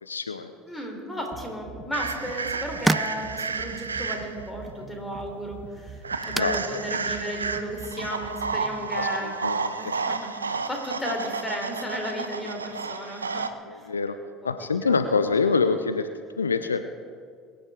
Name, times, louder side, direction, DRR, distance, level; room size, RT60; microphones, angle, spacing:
voice 1, 0.0-0.5 6.3-6.5 8.9-9.9 13.7-14.2 14.4-16.1 16.4-16.8, left 4 dB, 85° left, 10 dB, 0.5 m, -26 dB
voice 2, 0.7-9.4 9.8-13.9 14.4-14.5 14.8-14.9, equal, 10° left, 1 dB, 3.8 m, -34 dB
sound 1, 1.3-8.9, right 6 dB, 40° right, 1.5 m, -43 dB
sound 2, 1.9-9.2, right 2 dB, 10° right, 0.3 m, -35 dB
sound 3, 1.9-4.5 6.0-13.5, right 4 dB, 85° right, 0.5 m, -31 dB
22.5 x 10.5 x 3.8 m, 2.1 s
figure-of-eight pair, 65°, 0 cm